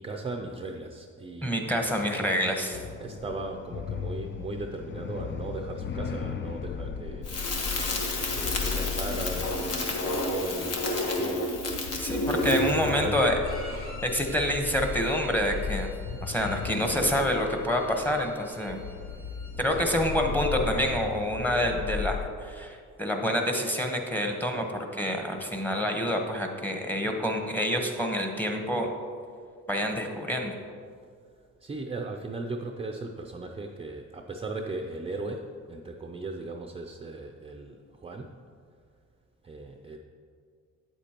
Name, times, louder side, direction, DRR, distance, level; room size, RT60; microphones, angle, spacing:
voice 1, 0.0-2.4 3.0-7.3 8.3-11.5 12.3-13.3 14.2-14.3 19.6-20.1 31.6-38.3 39.4-40.0, right 2 dB, 20° right, 3 dB, 0.5 m, -37 dB
voice 2, 1.4-2.8 12.0-13.4 14.0-15.9 16.2-18.8 19.6-28.9 29.7-30.5, equal, 5° left, 3 dB, 1.0 m, -27 dB
sound 1, 2.7-22.3, left 6 dB, 40° left, 0.4 m, -36 dB
Crackle, 7.3-13.0, left 2 dB, 55° left, 1.3 m, -29 dB
Bowed string instrument, 13.4-19.7, left 1 dB, 70° left, 2.0 m, -49 dB
8.5 x 8.2 x 3.0 m, 2.1 s
cardioid pair, 90°, 30 cm